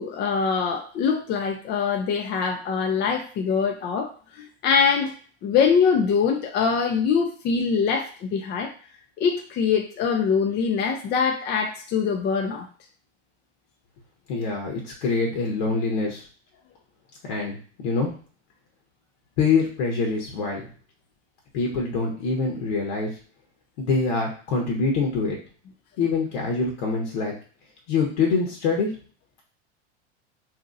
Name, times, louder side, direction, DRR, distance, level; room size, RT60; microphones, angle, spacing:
voice 1, 0.0-5.1 5.4-8.7 9.2-12.6, left 6 dB, 30° left, 3 dB, 0.4 m, -23 dB
voice 2, 14.3-16.3 17.2-18.1 19.4-20.6 21.5-23.1 23.8-25.4 26.0-27.3 27.9-28.9, left 4 dB, 70° left, -1 dB, 1.0 m, -25 dB
2.8 x 2.7 x 2.5 m, 0.42 s
hypercardioid pair, 110°, 34 cm